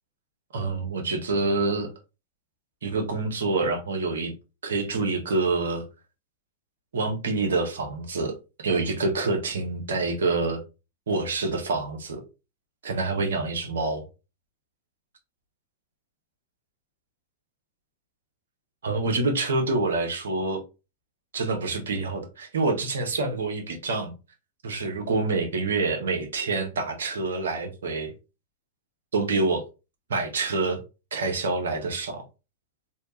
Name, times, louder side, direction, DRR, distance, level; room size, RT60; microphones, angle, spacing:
voice 1, 0.5-1.9 2.8-4.3 4.6-5.8 6.9-10.6 11.1-12.2 12.8-14.0 18.8-20.6 21.3-24.1 24.6-28.1 29.1-29.6 30.1-30.8 31.1-32.2, right 3 dB, 75° right, 1.0 m, -27 dB
3.3 x 2.7 x 2.8 m
hypercardioid pair, 100°, 0 cm